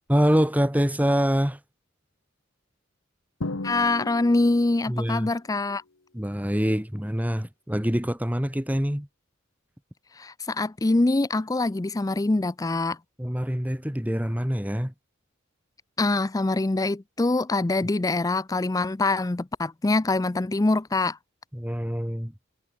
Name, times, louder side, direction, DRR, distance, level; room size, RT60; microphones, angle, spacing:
voice 1, 0.1-1.6 4.9-5.3 6.1-9.1 13.2-14.9 21.5-22.3, equal, 10° right, 2.4 m, -25 dB
Drum, 3.4-5.1, left 2 dB, 75° left, 1.4 m, -35 dB
voice 2, 3.6-5.8 10.1-13.0 16.0-21.2, left 2 dB, 15° left, 0.4 m, -24 dB
head